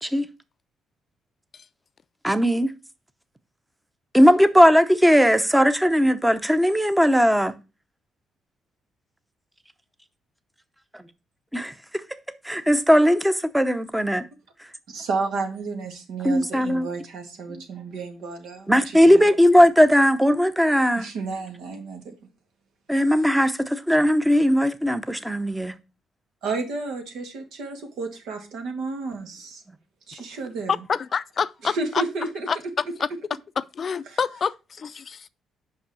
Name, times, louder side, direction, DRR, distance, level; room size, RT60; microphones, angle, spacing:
voice 1, 2.2-2.7 4.1-7.5 10.9-11.0 11.5-12.0 12.4-14.3 16.2-16.9 18.7-21.1 22.9-25.8, equal, 5° right, 0.7 m, -18 dB
voice 2, 14.9-19.3 21.0-22.1 26.4-29.6 30.1-30.7 31.6-32.5 34.1-34.2, right 4 dB, 80° right, 1.9 m, -32 dB
voice 3, 30.7-32.0 32.5-32.6 33.8-35.3, left 6 dB, 45° left, 0.4 m, -27 dB
5.6 x 5.5 x 6.1 m
cardioid pair, 90°, 0 cm